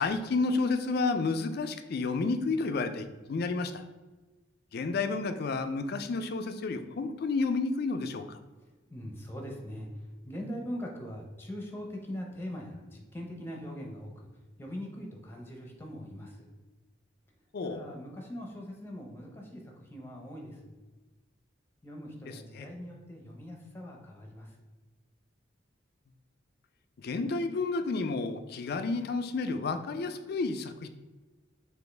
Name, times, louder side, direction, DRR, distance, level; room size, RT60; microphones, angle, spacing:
voice 1, 0.0-3.8 4.7-8.4 17.5-17.8 22.5-22.7 27.0-30.9, left 3 dB, 55° left, 9 dB, 0.4 m, -31 dB
voice 2, 8.6-14.3 14.6-16.5 17.6-20.7 21.8-24.6, equal, 10° left, 0 dB, 0.6 m, -41 dB
6.2 x 2.5 x 3.3 m, 1.2 s
head